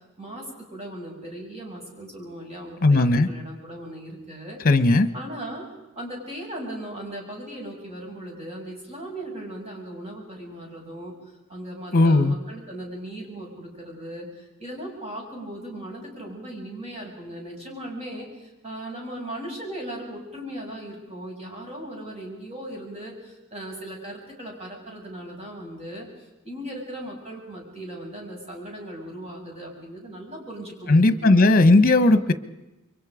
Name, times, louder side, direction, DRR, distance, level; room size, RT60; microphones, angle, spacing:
voice 1, 0.2-4.6 5.1-5.7 6.0-26.1 26.4-31.5, right 1 dB, 30° right, -1 dB, 7.1 m, -38 dB
voice 2, 2.8-3.3 4.6-5.1 11.9-12.3 30.9-32.3, left 2 dB, 45° left, 12 dB, 1.2 m, -16 dB
28.5 x 24.0 x 5.1 m, 0.99 s
head